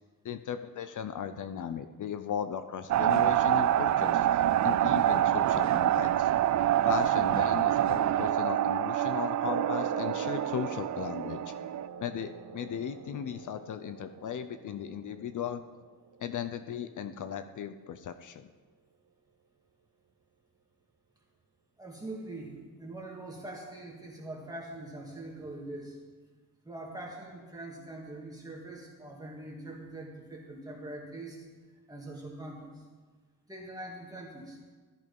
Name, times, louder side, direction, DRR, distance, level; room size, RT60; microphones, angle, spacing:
voice 1, 0.2-6.3 6.9-11.5 12.0-15.6 16.2-18.5, left 8 dB, 60° left, 10 dB, 0.7 m, -37 dB
sound 1, 2.9-11.9, right 12 dB, 55° right, 0.5 m, -26 dB
sound 2, 9.5-16.5, right 6 dB, 70° right, 1.8 m, -42 dB
voice 2, 21.8-26.0 26.6-31.5 31.9-32.8 33.5-34.7, right 2 dB, 10° right, -3 dB, 2.0 m, -43 dB
14.0 x 13.5 x 5.4 m, 1.4 s
wide cardioid pair, 145°, 35 cm